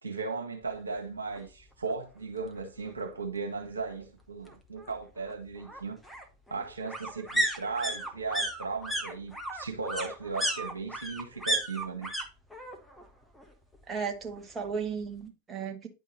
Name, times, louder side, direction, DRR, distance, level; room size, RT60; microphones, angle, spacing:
voice 1, 0.0-6.0 6.5-12.1, right 4 dB, 75° right, 1.6 m, -36 dB
sound 1, 1.4-1.5 1.8-1.9 2.2-3.2 4.5-12.3 12.5-13.1 13.3-14.4 14.7-14.8, right 1 dB, 5° left, 1.4 m, -34 dB
voice 2, 13.9-15.9, right 6 dB, 20° right, 1.6 m, -35 dB
10.5 x 3.7 x 4.2 m
figure-of-eight pair, 90°, 0 cm